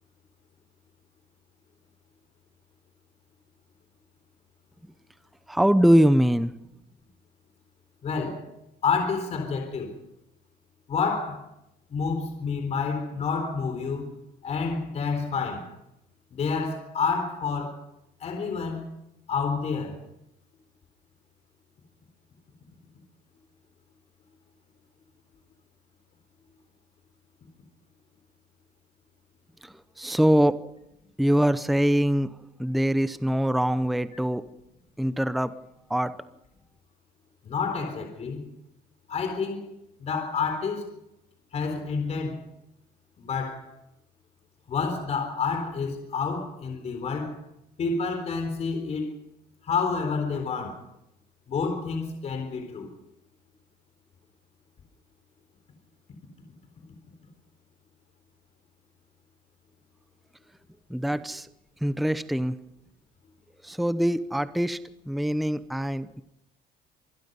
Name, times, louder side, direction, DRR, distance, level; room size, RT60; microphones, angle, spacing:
voice 1, 5.5-6.5 29.6-30.6 31.2-32.3 32.6-34.4 35.0-35.5 35.9-36.1 60.9-61.5 61.8-62.6 63.6-64.8 65.1-66.2, equal, ahead, 0.7 m, -23 dB
voice 2, 8.0-8.5 8.8-9.9 10.9-11.5 11.9-14.1 14.4-15.7 16.3-17.8 18.2-18.9 19.3-20.0 37.4-38.5 39.1-39.7 40.0-40.9 41.5-42.4 43.2-43.7 44.7-47.4 47.8-49.1 49.6-50.8 51.5-52.9, left 5 dB, 40° left, 4.0 m, -29 dB
26.0 x 20.5 x 5.5 m
cardioid pair, 135°, 17 cm